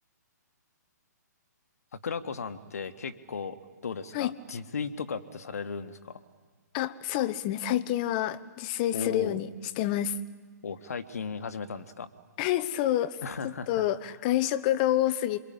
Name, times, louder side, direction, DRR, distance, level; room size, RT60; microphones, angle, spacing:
voice 1, 1.9-3.6 3.8-6.2 8.9-9.4 10.6-12.1 13.2-13.8, left 5 dB, 55° left, 11 dB, 1.6 m, -36 dB
voice 2, 6.7-9.5 9.8-10.1 12.4-13.2 13.4-15.5, left 13 dB, 30° left, 15 dB, 1.0 m, -28 dB
27.5 x 24.0 x 8.7 m, 1.4 s
figure-of-eight pair, 125°, 10 cm